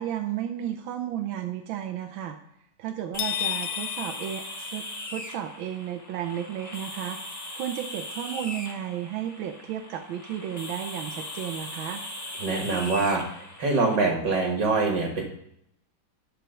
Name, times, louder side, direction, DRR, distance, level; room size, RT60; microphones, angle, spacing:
voice 1, 0.0-2.4 2.8-4.8 5.1-7.2 7.5-12.0, right 10 dB, 80° right, 5 dB, 1.5 m, -33 dB
sound 1, 3.1-14.0, left 1 dB, 20° left, 0.5 m, -39 dB
sound 2, 3.2-5.4, left 12 dB, 80° left, 1.5 m, -33 dB
voice 2, 12.4-15.2, right 3 dB, 65° right, 1 dB, 2.2 m, -25 dB
11.5 x 4.4 x 5.2 m, 0.74 s
omnidirectional pair, 2.1 m